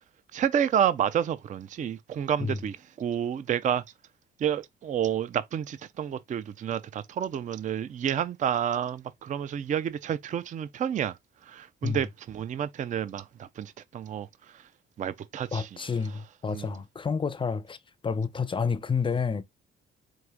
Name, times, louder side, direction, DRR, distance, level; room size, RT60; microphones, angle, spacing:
voice 1, 0.3-3.8 4.4-11.2 11.5-14.3 15.0-15.7 16.5-16.7, right 9 dB, 40° right, 0.4 m, -29 dB
voice 2, 15.5-17.8 18.0-19.4, left 5 dB, 25° left, 0.5 m, -29 dB
4.7 x 2.5 x 3.6 m
cardioid pair, 90°, 20 cm